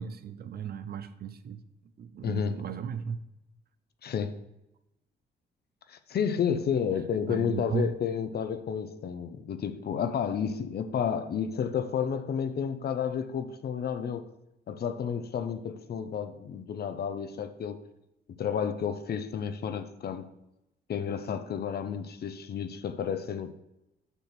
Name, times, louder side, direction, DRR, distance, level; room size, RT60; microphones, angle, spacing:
voice 1, 0.0-1.6 2.0-3.2 7.3-7.9, right 7 dB, 50° right, 0.6 m, -35 dB
voice 2, 2.2-2.6 4.0-4.3 5.9-14.3 14.7-17.8 18.4-20.2 20.9-23.5, left 7 dB, 55° left, 0.7 m, -31 dB
6.9 x 5.8 x 4.4 m
cardioid pair, 90°, 20 cm